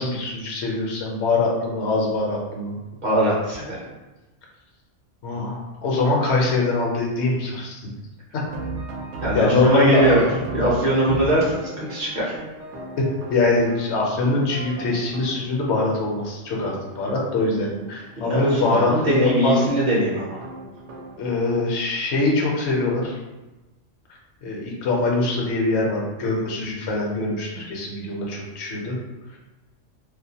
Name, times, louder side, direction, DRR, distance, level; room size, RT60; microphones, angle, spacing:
voice 1, 0.0-2.8 5.2-7.9 9.3-10.3 13.0-19.7 21.2-23.2 24.4-29.0, left 2 dB, 70° left, -2 dB, 0.9 m, -23 dB
voice 2, 3.0-3.8 9.2-10.2 10.5-11.4 11.8-12.4 18.2-20.4, right 1 dB, 45° right, -7 dB, 0.7 m, -21 dB
sound 1, 8.4-22.0, right 3 dB, 75° right, 0.9 m, -37 dB
2.4 x 2.1 x 2.7 m, 1.1 s
omnidirectional pair, 1.2 m